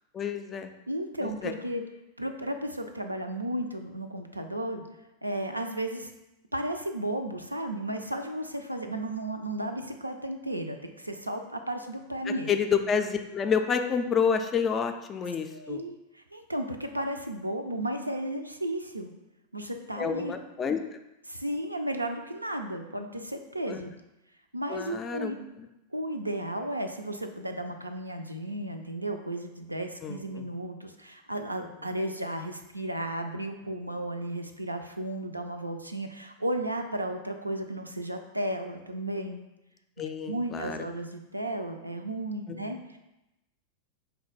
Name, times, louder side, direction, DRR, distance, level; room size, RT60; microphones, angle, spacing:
voice 1, 0.1-0.7 1.4-1.5 12.5-15.8 20.0-20.8 23.7-23.8 24.7-25.3 30.0-30.2 40.0-40.8 42.5-42.6, left 6 dB, 25° left, 7 dB, 0.3 m, -28 dB
voice 2, 0.9-1.8 2.2-4.8 5.2-6.1 6.5-12.5 15.5-19.1 19.5-20.3 21.2-23.9 24.5-25.5 25.9-39.4 40.3-43.0, right 1 dB, 85° right, 5 dB, 0.3 m, -34 dB
4.2 x 2.1 x 4.0 m, 0.94 s
figure-of-eight pair, 90°, 0 cm